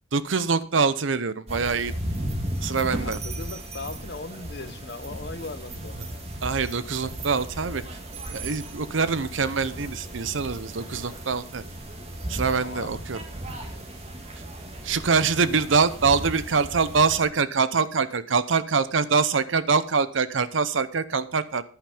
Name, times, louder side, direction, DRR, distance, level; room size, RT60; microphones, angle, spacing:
voice 1, 0.1-1.9 2.6-3.2 6.4-7.8 8.3-11.6 12.3-13.2 14.8-21.6, right 5 dB, 80° right, 0.7 m, -24 dB
sound 1, 1.5-17.3, right 1 dB, 30° right, 1.9 m, -36 dB
voice 2, 3.0-5.9 12.5-13.0, left 3 dB, 55° left, 0.9 m, -38 dB
10.5 x 9.0 x 5.0 m
head